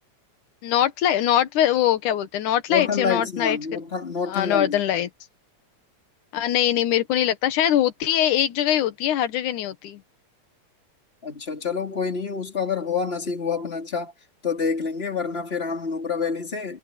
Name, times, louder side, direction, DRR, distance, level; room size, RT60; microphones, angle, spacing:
voice 1, 0.6-3.6 4.3-5.1 6.3-10.0, left 11 dB, 90° left, 2.8 m, -22 dB
voice 2, 2.7-4.8 11.2-14.1 14.4-16.8, left 5 dB, 20° left, 3.1 m, -27 dB
omnidirectional pair, 3.4 m